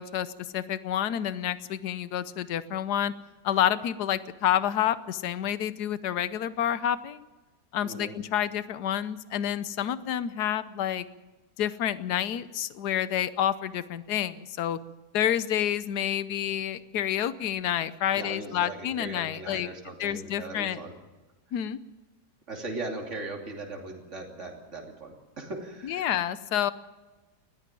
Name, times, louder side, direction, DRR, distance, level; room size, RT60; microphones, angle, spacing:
voice 1, 0.0-3.1 3.4-7.3 7.7-11.0 11.6-14.8 15.1-19.7 20.0-20.8 21.5-21.8 25.8-26.7, left 10 dB, 75° left, 14 dB, 1.4 m, -29 dB
voice 2, 7.8-8.1 18.1-20.9 22.5-26.1, right 2 dB, 45° right, 1 dB, 3.3 m, -39 dB
20.0 x 14.5 x 9.1 m, 1.2 s
omnidirectional pair, 1.8 m